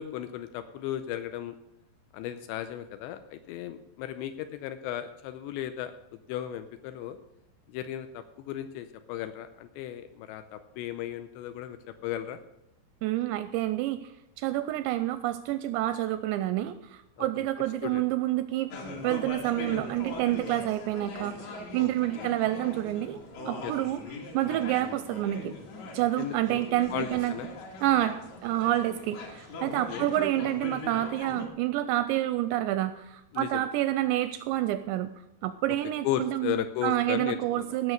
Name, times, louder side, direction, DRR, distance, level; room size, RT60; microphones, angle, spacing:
voice 1, 0.0-1.6 2.1-5.9 6.3-7.2 7.7-12.4 17.2-17.3 17.8-18.0 21.8-22.3 23.6-23.7 26.2-26.6 26.9-27.5 29.6-30.1 33.3-33.7 36.0-37.8, left 11 dB, 80° left, 10 dB, 2.7 m, -35 dB
voice 2, 13.0-14.1 14.4-18.7 19.0-21.4 21.7-23.2 23.5-24.0 24.3-25.5 25.9-27.3 27.8-35.1 35.4-37.9, right 14 dB, 85° right, 12 dB, 2.5 m, -28 dB
sound 1, 18.7-31.5, left 1 dB, 50° left, 2.4 m, -40 dB
16.0 x 6.4 x 6.5 m, 0.89 s
omnidirectional pair, 5.4 m